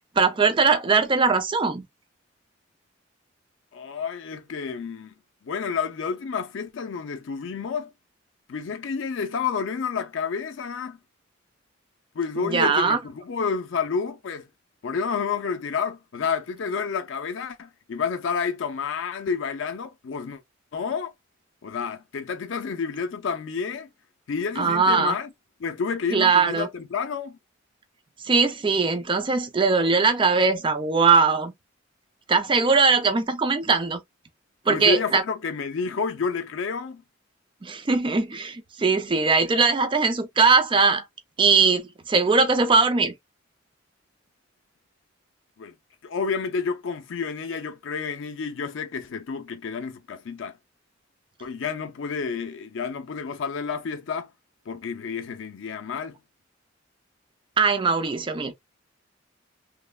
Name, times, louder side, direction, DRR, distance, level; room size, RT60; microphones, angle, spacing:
voice 1, 0.2-1.8 12.4-13.0 24.6-25.2 26.1-26.7 28.2-31.5 32.3-34.0 34.7-35.2 37.6-41.0 41.4-43.1 57.6-58.5, right 4 dB, 25° right, 0.4 m, -20 dB
voice 2, 3.7-5.1 5.4-7.9 8.5-11.0 12.1-14.5 14.8-20.4 20.7-21.1 21.6-23.9 24.3-25.3 25.6-27.4 34.7-37.0 45.6-45.7 46.0-50.6 51.4-54.3 54.7-56.2, left 5 dB, 70° left, 0.5 m, -30 dB
3.1 x 2.0 x 2.2 m
head